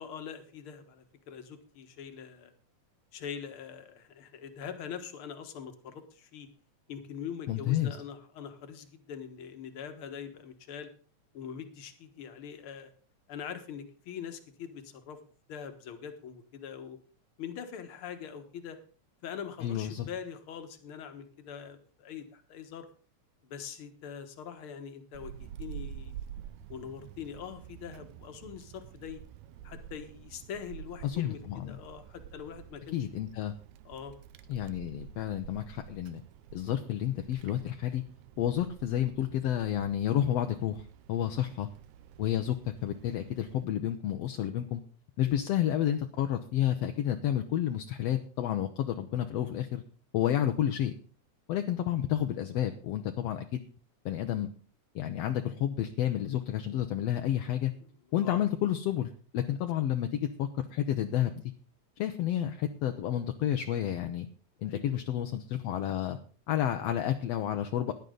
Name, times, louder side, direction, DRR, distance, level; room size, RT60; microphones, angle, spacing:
voice 1, 0.0-2.5 3.1-6.5 6.9-10.9 11.3-12.9 13.3-15.2 15.5-17.0 17.4-18.8 19.2-22.9 23.4-26.2 26.7-29.2 29.6-33.0 33.9-34.1 45.2-45.3 58.2-58.4 64.6-65.0, left 7 dB, 55° left, 8 dB, 2.0 m, -43 dB
voice 2, 7.5-8.0 19.6-20.1 31.0-31.8 32.9-33.5 34.5-36.2 36.5-38.0 38.4-41.7 42.2-44.8 45.2-49.8 50.1-50.9 51.5-53.6 54.1-54.5 55.0-57.7 58.1-61.3 62.0-64.3 64.6-66.2 66.5-67.9, left 11 dB, 70° left, 6 dB, 1.7 m, -30 dB
Wind, 25.1-43.7, right 9 dB, 85° right, 2.1 m, -49 dB
16.0 x 10.5 x 3.9 m, 0.39 s
omnidirectional pair, 3.4 m